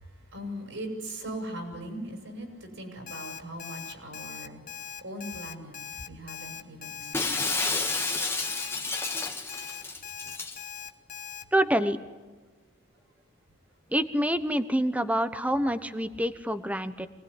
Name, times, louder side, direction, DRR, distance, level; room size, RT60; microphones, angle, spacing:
voice 1, 0.3-4.6 5.0-5.7 6.1-7.7, right 1 dB, 75° right, 3 dB, 6.7 m, -39 dB
Alarm, 3.1-11.4, left 8 dB, 45° left, 1.2 m, -40 dB
Shatter, 7.1-10.6, left 3 dB, 15° left, 1.7 m, -30 dB
voice 2, 11.5-12.0 13.9-17.1, equal, 5° right, 11 dB, 1.1 m, -26 dB
25.0 x 19.5 x 9.8 m, 1.2 s
head